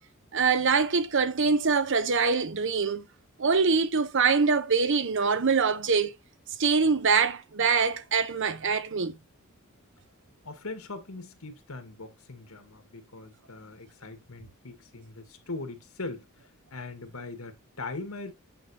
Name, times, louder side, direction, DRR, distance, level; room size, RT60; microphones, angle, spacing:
voice 1, 0.3-3.0 3.4-6.1 6.6-9.1, right 5 dB, 60° right, 0.9 m, -24 dB
voice 2, 10.4-18.3, left 3 dB, 85° left, 1.9 m, -41 dB
9.1 x 5.8 x 2.9 m
head